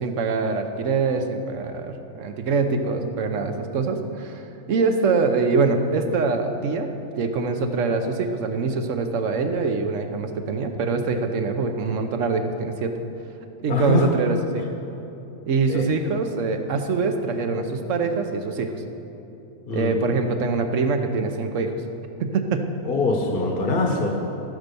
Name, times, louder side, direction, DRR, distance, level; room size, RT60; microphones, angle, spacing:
voice 1, 0.0-6.9 7.2-12.9 13.6-14.6 15.5-18.7 19.7-21.7 22.2-22.7 24.0-24.1, right 4 dB, 60° right, 6 dB, 1.2 m, -24 dB
voice 2, 13.6-14.1 15.7-15.9 19.7-20.0 22.8-24.1, left 3 dB, 40° left, 1 dB, 1.4 m, -23 dB
13.0 x 9.8 x 6.8 m, 3.0 s
omnidirectional pair, 1.5 m